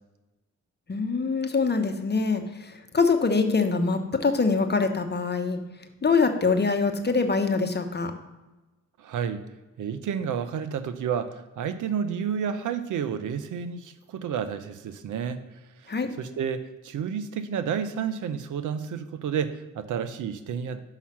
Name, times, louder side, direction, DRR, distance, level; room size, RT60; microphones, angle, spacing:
voice 1, 0.9-2.4 2.9-5.6 6.0-8.1 15.9-16.1, left 4 dB, 30° left, 7 dB, 1.0 m, -24 dB
voice 2, 9.0-9.4 9.8-15.4 15.8-20.8, right 7 dB, 60° right, 11 dB, 0.7 m, -30 dB
5.8 x 5.6 x 6.1 m, 1.1 s
hypercardioid pair, 45°, 34 cm